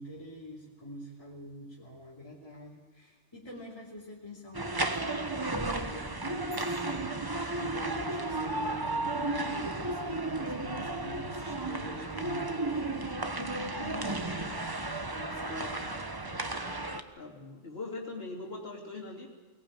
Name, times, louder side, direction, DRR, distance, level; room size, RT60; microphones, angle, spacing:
voice 1, 0.0-14.4 15.0-15.9, left 1 dB, 20° left, -5 dB, 2.9 m, -45 dB
sound 1, 4.5-17.0, right 2 dB, 20° right, 1.1 m, -33 dB
sound 2, 6.5-8.2, left 2 dB, 50° right, 7.3 m, -58 dB
voice 2, 15.5-16.0 17.2-19.3, left 3 dB, 55° left, -3 dB, 3.0 m, -41 dB
23.0 x 18.5 x 8.7 m, 1.3 s
omnidirectional pair, 1.2 m